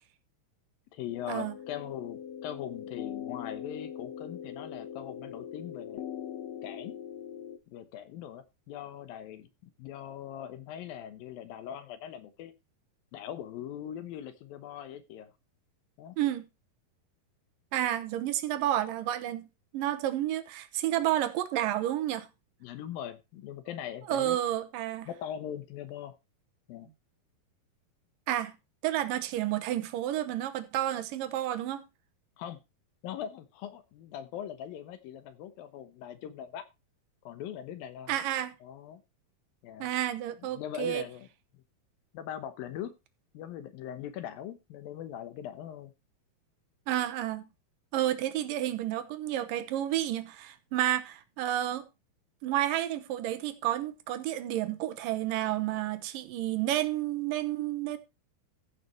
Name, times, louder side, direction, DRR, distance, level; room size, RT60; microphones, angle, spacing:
voice 1, 0.9-6.0 6.6-6.9 7.7-12.5 13.1-15.3 16.0-16.2 22.6-24.4 25.1-26.2 26.7-26.9 32.4-32.6 33.0-36.7 37.2-38.2 38.6-39.0 39.6-39.9 40.4-41.3 42.1-42.9 43.3-45.9, left 10 dB, 75° left, 2.7 m, -41 dB
sound 1, 1.0-7.6, left 9 dB, 90° left, 1.5 m, -41 dB
voice 2, 16.2-16.5 17.7-19.5 19.7-22.3 24.1-25.1 28.3-28.5 28.8-31.8 38.1-38.5 39.8-41.0 46.9-47.5 47.9-51.9 52.4-58.0, right 13 dB, 70° right, 2.4 m, -30 dB
14.5 x 5.8 x 4.4 m
omnidirectional pair, 4.4 m